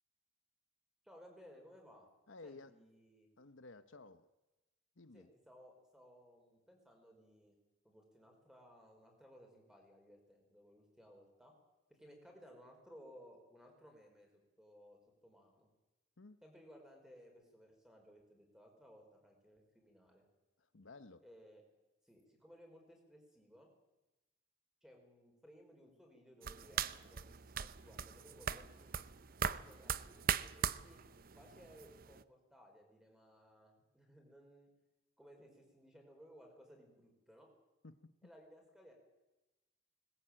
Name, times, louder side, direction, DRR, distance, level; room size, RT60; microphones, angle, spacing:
voice 1, 1.0-2.1 2.4-3.3 5.1-7.6 7.8-11.5 11.9-14.3 14.6-15.7 16.4-20.2 21.2-21.6 22.0-23.7 24.8-28.9 29.4-31.0 31.3-34.7 35.2-37.5 38.2-38.9, equal, 5° right, 5.1 m, -61 dB
voice 2, 2.3-2.7 3.4-4.3 5.0-5.3 16.2-16.4 20.7-21.2 37.8-38.3, left 3 dB, 75° left, 1.0 m, -55 dB
sound 1, 26.4-32.2, right 7 dB, 45° right, 0.7 m, -40 dB
20.0 x 20.0 x 8.9 m
head